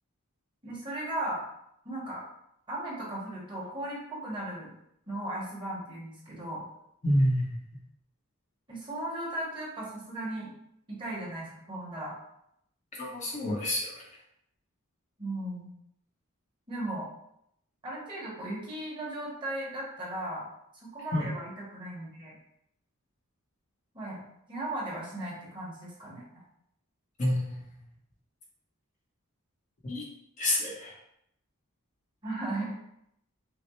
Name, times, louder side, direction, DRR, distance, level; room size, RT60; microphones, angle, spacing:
voice 1, 0.6-1.4 1.8-2.2 2.7-4.7 5.1-6.6 8.7-10.5 10.9-12.2 15.2-15.7 16.7-17.1 17.8-20.4 20.7-22.3 23.9-24.2 24.5-26.2 32.2-32.8, right 1 dB, 20° right, -5 dB, 1.3 m, -36 dB
voice 2, 7.0-7.6 12.9-14.0 21.1-21.3 27.2-27.7 29.8-30.0 30.4-30.9, left 1 dB, 35° left, -3 dB, 0.8 m, -28 dB
5.9 x 2.0 x 3.1 m, 0.76 s
head